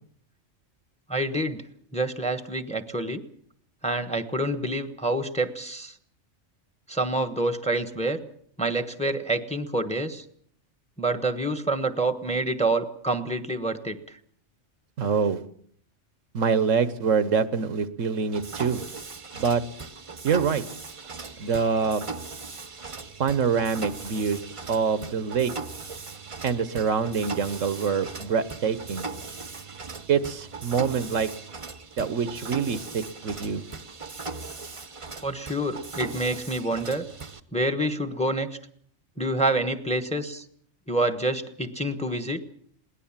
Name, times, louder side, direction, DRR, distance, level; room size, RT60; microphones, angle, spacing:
voice 1, 1.1-1.6 1.9-3.2 3.8-5.9 6.9-8.2 8.6-10.2 11.0-14.0 35.2-37.1 37.5-38.5 39.2-40.4 40.9-42.4, right 1 dB, 5° left, 11 dB, 1.1 m, -27 dB
voice 2, 15.0-15.4 16.3-18.8 19.3-19.6 20.2-20.6 21.4-22.0 23.2-24.4 24.7-25.5 26.4-29.0 30.1-31.3 32.0-33.6, right 6 dB, 80° right, 14 dB, 1.4 m, -25 dB
Mechanisms, 18.3-37.4, right 4 dB, 30° right, 0.9 m, -39 dB
21.5 x 18.0 x 7.4 m, 0.62 s
omnidirectional pair, 1.3 m